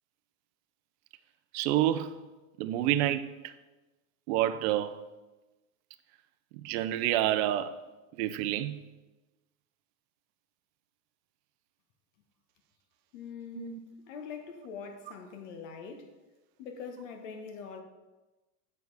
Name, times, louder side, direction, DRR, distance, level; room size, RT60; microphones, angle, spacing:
voice 1, 1.5-2.2 2.6-3.5 4.3-5.0 6.5-7.7 8.2-8.8 13.5-13.8, right 13 dB, 60° right, 0.6 m, -28 dB
voice 2, 13.1-16.1 16.6-17.8, left 6 dB, 75° left, 1.3 m, -43 dB
7.8 x 4.8 x 4.0 m
supercardioid pair, 135°, 37 cm